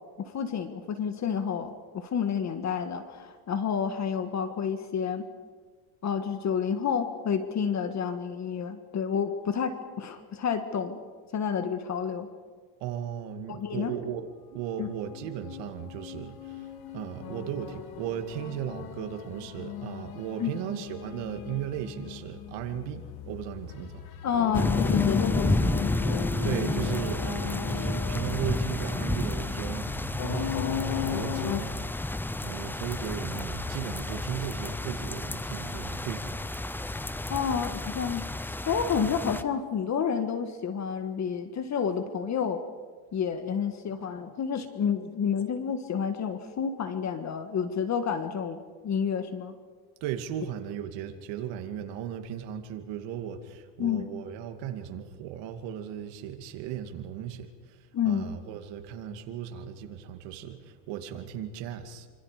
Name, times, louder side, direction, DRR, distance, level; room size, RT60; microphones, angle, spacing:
voice 1, 0.2-5.2 6.0-11.0 11.3-12.3 13.5-13.9 14.8-14.9 20.4-20.6 24.2-25.7 37.3-38.3 38.6-42.6 43.1-49.5 53.8-54.1 57.9-58.3, left 7 dB, 35° left, 8 dB, 1.7 m, -30 dB
voice 2, 12.8-14.3 14.5-16.7 16.9-24.1 26.4-31.9 32.4-36.3 50.0-62.1, right 10 dB, 70° right, 6 dB, 2.5 m, -36 dB
sound 1, 15.1-31.6, left 9 dB, 55° left, 2.1 m, -36 dB
sound 2, 24.5-39.4, left 2 dB, 5° left, 0.6 m, -31 dB
26.0 x 26.0 x 5.1 m, 1.5 s
cardioid pair, 120°, 45 cm